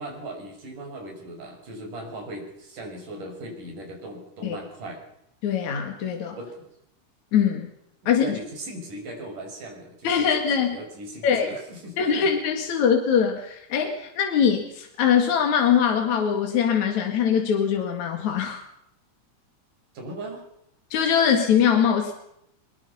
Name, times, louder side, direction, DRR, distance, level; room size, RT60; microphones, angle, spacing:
voice 1, 0.0-5.0 6.3-6.7 8.0-10.3 10.7-12.3 19.9-20.4, right 1 dB, 90° right, 2 dB, 7.4 m, -38 dB
voice 2, 5.4-6.4 7.3-7.7 8.1-8.4 10.0-10.8 11.2-11.5 12.0-18.6 20.9-22.1, left 7 dB, 65° left, 3 dB, 3.5 m, -22 dB
23.0 x 22.5 x 5.6 m, 0.77 s
omnidirectional pair, 3.6 m